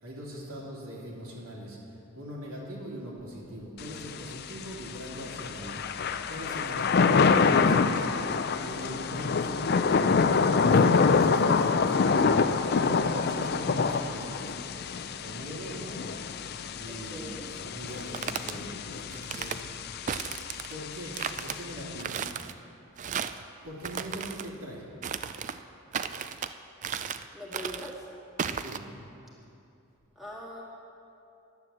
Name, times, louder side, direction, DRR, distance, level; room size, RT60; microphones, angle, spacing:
voice 1, 0.0-1.8 2.1-14.6 15.2-16.2 16.8-20.3 20.7-22.2 23.3-24.8 28.6-28.9, equal, 75° right, -5 dB, 2.8 m, -41 dB
Thunder / Rain, 3.8-22.0, left 5 dB, 45° left, 0.4 m, -26 dB
voice 2, 16.9-17.5 27.3-28.1 30.2-30.6, equal, ahead, -6 dB, 1.7 m, -42 dB
sound 1, 17.9-18.5 19.1-19.6 20.1-20.8 21.1-21.6 22.0-22.5 23.0-23.4 23.8-24.5 25.0-25.6 25.9-26.5 26.8-27.3 27.5-27.9 28.4-28.8, right 7 dB, 35° right, 0.3 m, -34 dB
10.5 x 9.3 x 7.2 m, 2.7 s
head